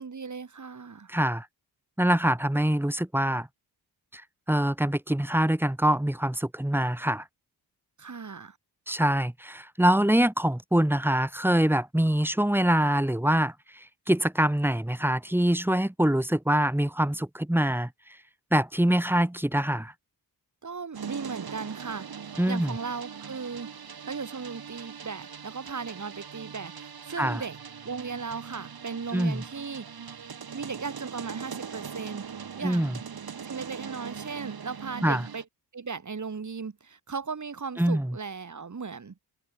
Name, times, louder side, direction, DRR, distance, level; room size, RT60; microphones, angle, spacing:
voice 1, 0.0-1.1 8.0-8.6 20.6-22.1 22.5-23.7 24.1-27.6 27.8-29.9 30.5-32.3 32.6-33.0 33.4-35.5 35.7-39.2, right 5 dB, 45° right, 5.9 m, -37 dB
voice 2, 1.1-1.5 2.0-3.5 4.1-4.2 4.5-7.2 8.9-13.5 14.1-17.9 18.5-19.9 22.4-22.7 27.2-27.4 29.1-29.4 32.6-32.9 35.0-35.2 37.8-38.1, right 1 dB, 5° right, 1.9 m, -24 dB
sound 1, 20.9-35.4, right 6 dB, 60° right, 5.4 m, -41 dB
wide cardioid pair, 110°, 41 cm